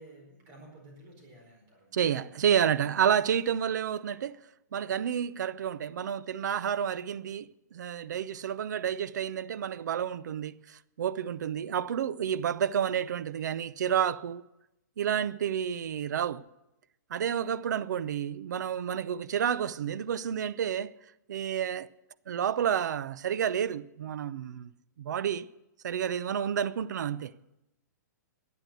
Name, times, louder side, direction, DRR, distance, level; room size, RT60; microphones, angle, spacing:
voice 1, 0.0-2.5, right 1 dB, 30° right, 4.6 m, -53 dB
voice 2, 1.9-4.4 4.7-14.4 15.0-16.4 17.1-20.9 21.3-21.9 22.3-24.7 25.0-25.5 25.8-27.3, right 9 dB, 70° right, 0.6 m, -30 dB
12.0 x 9.5 x 9.1 m
hypercardioid pair, 160°, 10 cm